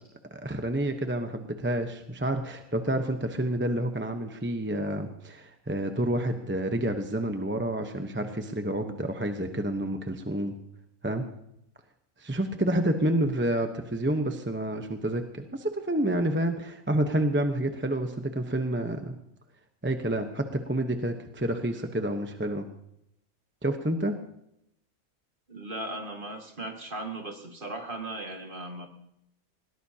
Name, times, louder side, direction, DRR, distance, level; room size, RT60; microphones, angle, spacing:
voice 1, 0.3-10.6 11.0-11.3 12.2-19.2 19.8-22.7 23.6-24.2, right 1 dB, 10° right, 5 dB, 0.8 m, -29 dB
voice 2, 25.5-28.9, right 2 dB, 35° right, 3 dB, 2.1 m, -37 dB
21.0 x 18.5 x 2.9 m, 0.79 s
omnidirectional pair, 1.5 m